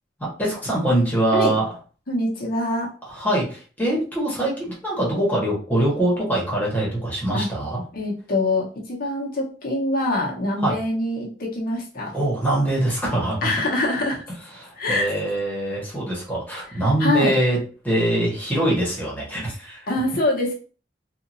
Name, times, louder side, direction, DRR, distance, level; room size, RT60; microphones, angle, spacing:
voice 1, 0.2-1.6 3.1-7.8 10.6-10.8 12.1-13.5 14.6-17.6 17.8-19.9, right 1 dB, 10° left, -5 dB, 1.2 m, -23 dB
voice 2, 2.1-2.9 7.3-7.5 7.9-12.2 13.4-14.2 14.8-15.1 17.0-17.4 19.9-20.5, left 2 dB, 55° left, -2 dB, 0.9 m, -24 dB
2.9 x 2.5 x 2.6 m, 0.38 s
head